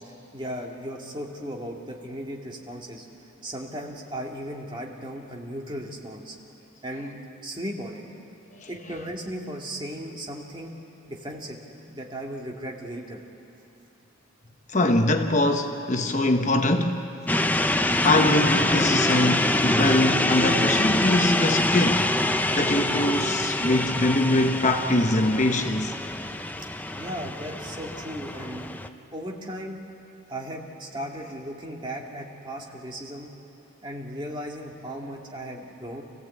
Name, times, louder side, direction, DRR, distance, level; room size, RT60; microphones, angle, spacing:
voice 1, 0.3-3.1 3.4-6.4 6.8-7.2 7.4-8.0 8.7-10.7 11.1-11.6 11.8-13.2 14.4-14.5 27.0-28.8 29.1-29.8 30.3-33.3 33.8-36.0, equal, 25° right, 2.1 m, -36 dB
voice 2, 14.7-17.1 18.0-22.1 22.5-25.9, left 1 dB, 35° left, 1.0 m, -23 dB
sound 1, 17.3-28.9, left 1 dB, 10° left, 0.6 m, -25 dB
28.0 x 16.0 x 8.4 m
head